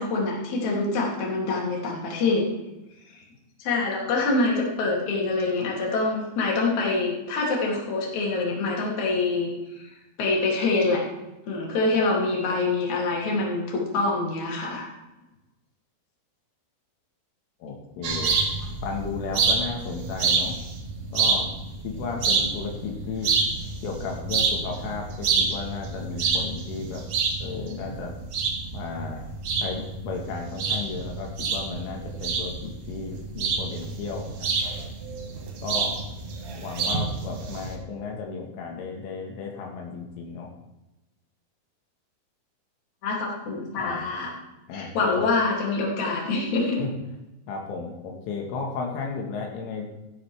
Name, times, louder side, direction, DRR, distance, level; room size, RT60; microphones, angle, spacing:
voice 1, 0.0-2.4 3.6-9.5 9.8-9.9 10.2-11.0 11.5-14.9 43.0-44.3 44.7-46.8, left 3 dB, 40° left, -3 dB, 3.6 m, -25 dB
voice 2, 17.6-18.4 18.8-20.6 21.1-21.5 21.8-23.3 23.8-27.0 27.4-28.1 28.7-29.2 29.6-34.7 35.6-35.9 36.6-40.5 43.8-44.0 44.7-45.2 46.8-46.9 47.5-49.9, left 5 dB, 80° left, 1 dB, 4.0 m, -34 dB
sound 1, 18.0-37.8, right 4 dB, 65° right, 1.7 m, -28 dB
15.0 x 12.0 x 3.5 m, 0.98 s
omnidirectional pair, 5.8 m